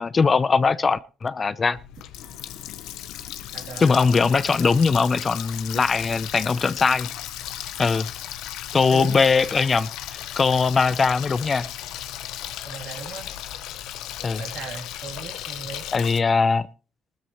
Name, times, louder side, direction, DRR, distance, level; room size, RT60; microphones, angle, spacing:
voice 1, 0.0-1.8 3.8-7.1 7.8-8.1 8.7-11.7 14.2-14.4 15.9-16.7, left 4 dB, 35° left, 0.6 m, -21 dB
Water tap faucet, 1.7-16.2, left 12 dB, 80° left, 0.8 m, -36 dB
voice 2, 3.5-3.9 8.9-9.5 12.6-13.3 14.4-15.9, right 5 dB, 75° right, 3.1 m, -38 dB
20.0 x 13.0 x 3.1 m
supercardioid pair, 70°, 0 cm